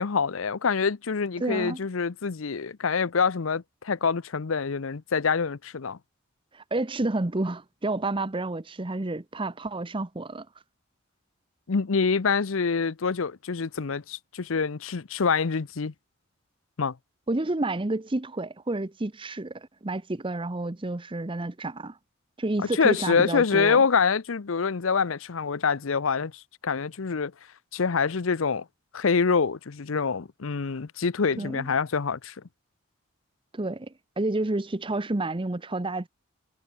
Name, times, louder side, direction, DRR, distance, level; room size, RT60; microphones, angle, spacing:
voice 1, 0.0-6.0 11.7-15.9 16.8-16.9 22.8-26.3 26.6-27.3 27.7-28.6 28.9-32.3, left 5 dB, 75° left, 0.7 m, -25 dB
voice 2, 1.4-1.8 6.5-10.5 17.3-22.0 22.4-23.8 31.4-31.7 33.5-36.1, right 2 dB, 25° right, 0.8 m, -30 dB
head